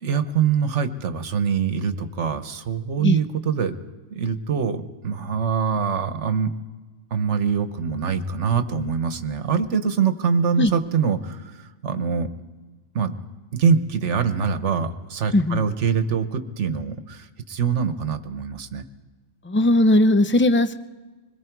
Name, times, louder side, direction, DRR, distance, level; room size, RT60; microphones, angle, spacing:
voice 1, 0.0-3.8 4.1-6.5 7.1-12.3 12.9-13.2 13.5-18.8, right 6 dB, 75° right, 10 dB, 1.4 m, -24 dB
voice 2, 15.3-15.6 19.5-20.7, left 1 dB, 20° left, 11 dB, 0.3 m, -18 dB
26.5 x 21.5 x 4.6 m, 1.3 s
omnidirectional pair, 1.2 m